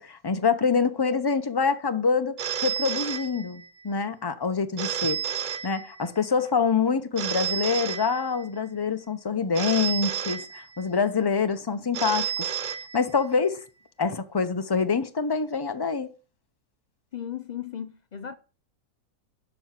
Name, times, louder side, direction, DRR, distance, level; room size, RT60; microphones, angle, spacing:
voice 1, 0.0-5.2 5.6-12.5 12.9-13.6 14.0-16.1, left 5 dB, 25° left, 0.5 m, -26 dB
Telephone, 2.4-3.9 4.8-6.3 7.2-8.7 9.5-11.0 11.9-13.4, right 8 dB, 90° right, 0.4 m, -31 dB
voice 2, 17.1-18.4, left 9 dB, 80° left, 0.4 m, -36 dB
12.5 x 4.7 x 7.5 m
omnidirectional pair, 1.7 m